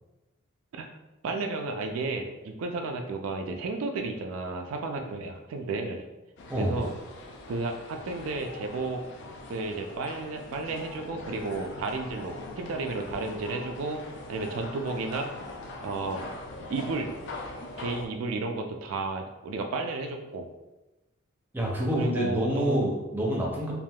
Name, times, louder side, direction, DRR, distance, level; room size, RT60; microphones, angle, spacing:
voice 1, 1.2-6.0 6.6-6.9 7.5-9.0 9.5-14.0 14.3-15.3 15.8-16.2 16.7-17.1 17.8-20.5 21.9-22.9, right 3 dB, 75° right, 4 dB, 0.3 m, -32 dB
sound 1, 6.4-18.1, left 2 dB, 55° left, 0.4 m, -42 dB
voice 2, 6.5-6.8 21.5-23.7, right 1 dB, 10° right, -3 dB, 0.5 m, -27 dB
3.4 x 2.4 x 2.2 m, 1.0 s
head